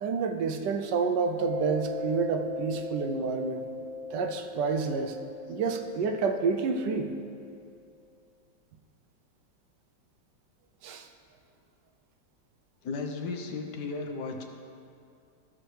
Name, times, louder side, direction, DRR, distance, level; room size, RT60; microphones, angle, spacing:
voice 1, 0.0-3.6 4.1-5.2 5.5-7.1 10.8-11.1, right 5 dB, 75° right, 5 dB, 1.2 m, -29 dB
Mallet percussion, 1.4-7.8, left 2 dB, 45° right, 1.1 m, -39 dB
voice 2, 12.8-14.4, left 4 dB, 70° left, 3 dB, 1.4 m, -35 dB
15.5 x 6.3 x 3.3 m, 2.4 s
omnidirectional pair, 2.0 m